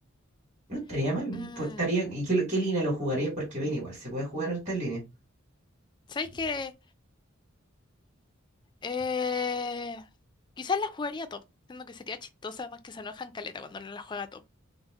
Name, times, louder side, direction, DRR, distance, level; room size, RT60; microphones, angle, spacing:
voice 1, 0.7-5.0, right 2 dB, 30° right, 1.4 m, -29 dB
voice 2, 1.3-1.9 6.1-6.7 8.8-10.0 10.6-11.4 11.7-14.4, left 5 dB, 20° left, 0.3 m, -34 dB
3.5 x 2.0 x 3.4 m
head